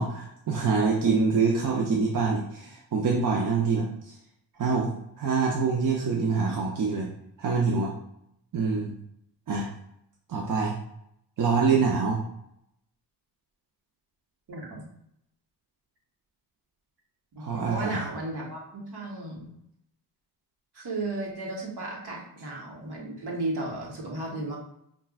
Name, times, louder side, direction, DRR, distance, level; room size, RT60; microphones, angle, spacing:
voice 1, 0.0-4.1 4.6-4.9 5.2-7.1 7.4-7.9 8.5-8.9 9.5-9.7 10.3-10.8 11.4-12.2 17.4-18.0, right 4 dB, 50° right, -1 dB, 0.7 m, -25 dB
voice 2, 14.5-14.8 17.3-19.5 20.7-24.6, right 2 dB, 70° right, -2 dB, 1.4 m, -34 dB
5.4 x 2.4 x 2.4 m, 0.76 s
cardioid pair, 60°, 41 cm